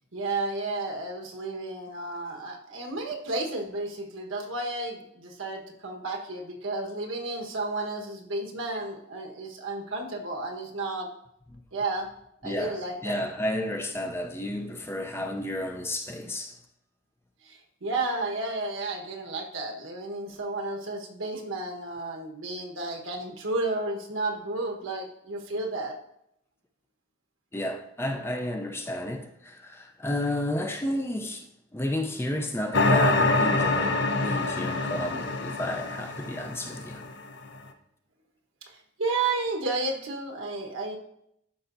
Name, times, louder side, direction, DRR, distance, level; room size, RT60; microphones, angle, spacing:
voice 1, 0.1-11.1 11.7-12.1 12.4-13.1 17.4-26.0 39.0-41.0, right 2 dB, 80° right, 1.2 m, -32 dB
voice 2, 12.4-16.6 27.5-31.5 31.7-37.1, left 1 dB, 10° left, 0.5 m, -32 dB
sound 1, 32.7-37.2, left 2 dB, 60° left, 0.7 m, -25 dB
12.5 x 5.6 x 2.6 m
head